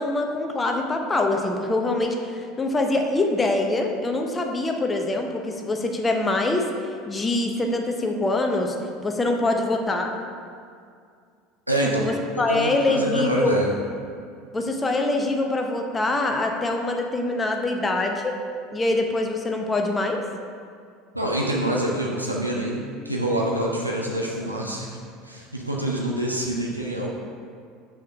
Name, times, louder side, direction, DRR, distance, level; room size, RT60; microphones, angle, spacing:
voice 1, 0.0-6.7 7.1-8.7 9.0-10.1 11.9-13.5 14.5-18.3 18.7-20.2, left 2 dB, 20° left, 3 dB, 0.8 m, -24 dB
voice 2, 11.7-12.1 12.5-13.7 21.1-25.0 25.2-27.1, right 1 dB, 90° right, -3 dB, 0.7 m, -26 dB
6.1 x 4.4 x 5.5 m, 2.3 s
figure-of-eight pair, 70°, 0 cm